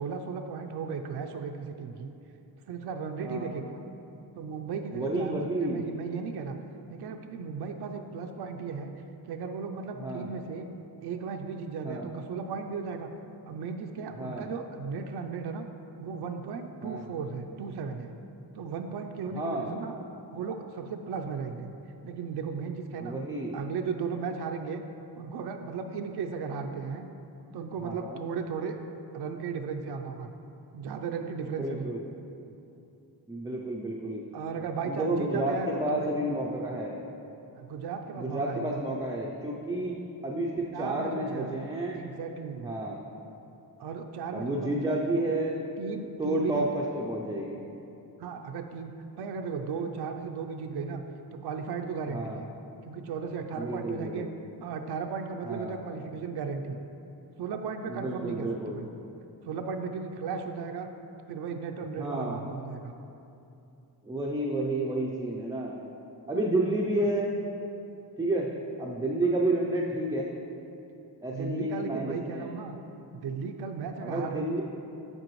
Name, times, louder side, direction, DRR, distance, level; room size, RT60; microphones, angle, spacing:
voice 1, 0.0-2.1 2.7-3.7 4.4-6.6 6.9-8.9 9.2-10.7 11.0-13.1 13.5-15.7 16.0-18.1 18.6-20.0 20.3-21.7 22.0-23.2 23.5-24.8 25.2-27.1 27.5-28.8 29.1-30.3 30.7-31.9 34.3-36.2 37.6-38.7 40.7-41.6 41.9-42.7 43.8-44.7 45.8-46.6 48.2-51.0 51.3-52.5 52.8-54.3 54.6-56.8 57.4-58.9 59.4-60.9 61.3-62.9 71.3-72.8 73.2-74.4, right 5 dB, 80° right, 5 dB, 0.5 m, -35 dB
voice 2, 4.9-5.8 10.0-10.3 11.8-12.1 14.2-14.5 16.8-17.1 19.3-19.7 23.0-23.6 27.8-28.2 31.6-32.0 33.3-34.2 34.8-37.0 38.2-40.0 40.2-42.0 42.6-43.0 44.3-45.5 46.2-47.6 52.1-52.4 53.6-54.3 55.4-55.8 57.9-58.8 62.0-62.4 64.0-65.8 66.3-67.4 68.2-68.5 68.8-70.3 71.2-72.5 74.0-74.6, right 1 dB, 10° right, -3 dB, 0.4 m, -30 dB
7.6 x 7.4 x 3.1 m, 2.8 s
wide cardioid pair, 165°, 39 cm